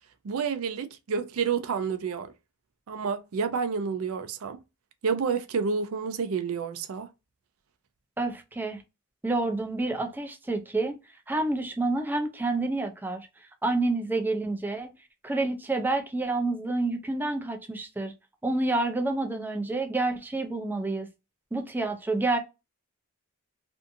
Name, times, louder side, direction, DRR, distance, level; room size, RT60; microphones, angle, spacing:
voice 1, 0.2-2.3 2.9-4.6 5.0-7.1, right 5 dB, 70° right, 0.4 m, -29 dB
voice 2, 8.2-8.8 9.2-11.0 11.3-13.3 13.6-14.9 15.2-18.1 18.4-21.1 21.5-22.4, right 2 dB, 10° right, 0.4 m, -28 dB
2.6 x 2.5 x 2.5 m
head